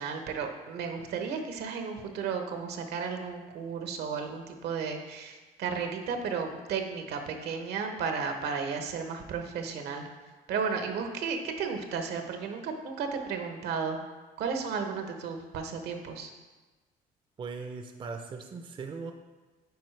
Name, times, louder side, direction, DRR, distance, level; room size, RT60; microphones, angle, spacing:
voice 1, 0.0-10.1 10.5-14.0 14.4-16.3, right 5 dB, 75° right, 5 dB, 0.9 m, -34 dB
voice 2, 17.4-19.1, right 4 dB, 30° right, 5 dB, 0.5 m, -39 dB
9.4 x 4.1 x 3.2 m, 1.3 s
cardioid pair, 110°, 17 cm